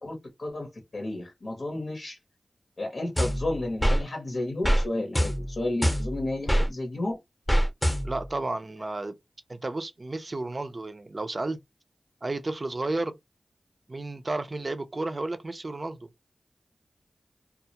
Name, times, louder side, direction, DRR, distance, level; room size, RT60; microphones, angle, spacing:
voice 1, 0.0-2.2 2.8-7.2, left 2 dB, 60° left, 0.7 m, -32 dB
sound 1, 3.2-4.0 4.6-4.8 5.1-6.7 7.5-8.3, equal, 5° left, 0.7 m, -24 dB
voice 2, 8.0-9.2 9.5-11.6 12.2-13.2 13.9-16.1, right 2 dB, 40° right, 0.4 m, -32 dB
2.2 x 2.0 x 2.7 m
cardioid pair, 45°, 0 cm